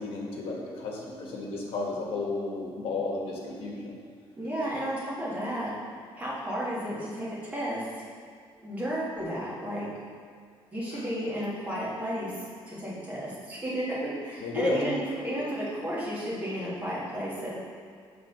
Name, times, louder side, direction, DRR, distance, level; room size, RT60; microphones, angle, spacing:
voice 1, 0.0-3.9 10.9-11.0 14.4-14.8, left 3 dB, 65° left, -1 dB, 1.2 m, -33 dB
voice 2, 4.4-5.7 6.1-7.8 8.6-9.9 10.7-12.3 12.7-13.8 14.2-17.5, equal, 15° right, -8 dB, 1.5 m, -33 dB
6.6 x 3.4 x 5.6 m, 2.2 s
cardioid pair, 175°, 10 cm